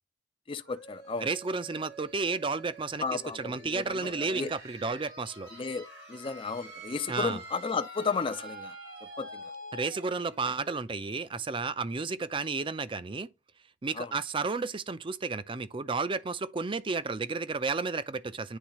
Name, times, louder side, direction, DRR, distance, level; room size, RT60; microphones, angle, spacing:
voice 1, 0.5-1.3 3.0-4.5 5.5-8.8 9.2-9.4 13.9-14.1, left 5 dB, 30° left, 0.4 m, -34 dB
sound 1, 0.6-12.2, right 1 dB, 85° right, 4.6 m, -47 dB
voice 2, 1.2-5.5 7.1-7.4 9.7-13.3 13.8-18.6, right 4 dB, 30° right, 0.5 m, -32 dB
10.0 x 3.5 x 3.0 m
head